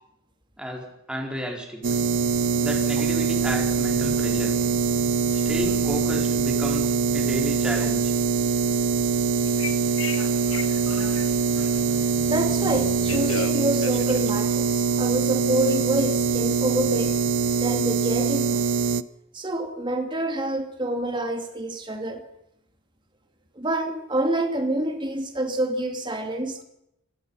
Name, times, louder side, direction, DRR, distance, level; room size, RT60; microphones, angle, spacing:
voice 1, 0.6-1.8 2.6-4.6 5.3-8.1, equal, 5° right, 0 dB, 4.7 m, -32 dB
sound 1, 1.8-19.0, right 5 dB, 65° right, 0.7 m, -23 dB
Telephone, 9.5-11.9 12.7-15.1, left 5 dB, 85° left, 1.7 m, -35 dB
voice 2, 12.3-17.1 17.6-18.8 19.3-22.2 23.6-26.6, right 1 dB, 25° right, 5 dB, 2.7 m, -27 dB
25.5 x 18.5 x 5.7 m, 0.81 s
head